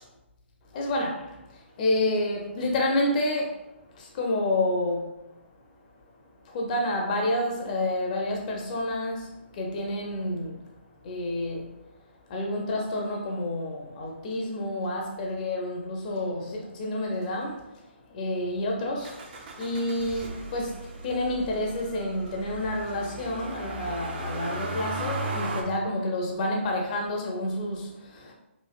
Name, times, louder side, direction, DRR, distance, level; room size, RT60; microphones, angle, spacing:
voice 1, 0.7-1.1 1.8-3.5 4.2-5.0 6.5-9.2 9.6-10.5 11.1-11.6 12.3-17.6 18.1-19.1 19.6-20.7 21.0-27.8, left 1 dB, 40° left, 1 dB, 0.5 m, -28 dB
Motor vehicle (road), 19.0-25.6, right 2 dB, 45° right, 0.5 m, -36 dB
3.1 x 2.4 x 2.3 m, 0.91 s
figure-of-eight pair, 135°, 7 cm